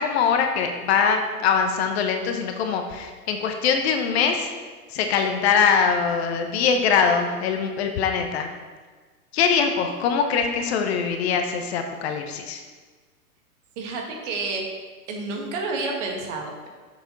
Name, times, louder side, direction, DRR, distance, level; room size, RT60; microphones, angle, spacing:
voice 1, 0.0-4.5 4.9-8.5 9.3-12.6, left 6 dB, 40° left, 5 dB, 0.9 m, -22 dB
voice 2, 13.8-14.6 15.1-16.7, right 3 dB, 45° right, 1 dB, 1.9 m, -29 dB
7.1 x 6.8 x 4.0 m, 1.4 s
figure-of-eight pair, 110°, 47 cm